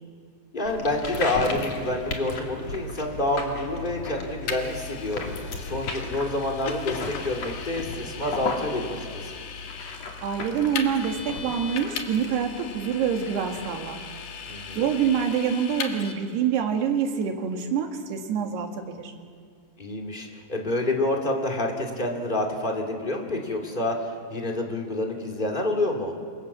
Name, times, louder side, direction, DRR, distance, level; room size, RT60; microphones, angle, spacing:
voice 1, 0.5-9.3 14.5-14.8 19.8-26.1, left 2 dB, 15° left, 0 dB, 1.9 m, -28 dB
sound 1, 0.7-15.3, left 3 dB, 45° left, 3.3 m, -36 dB
Vehicle, 4.5-16.1, left 6 dB, 60° left, 3.1 m, -38 dB
voice 2, 10.2-14.0 14.5-19.1, right 7 dB, 70° right, 3 dB, 3.9 m, -26 dB
27.5 x 25.0 x 7.4 m, 2.1 s
omnidirectional pair, 5.0 m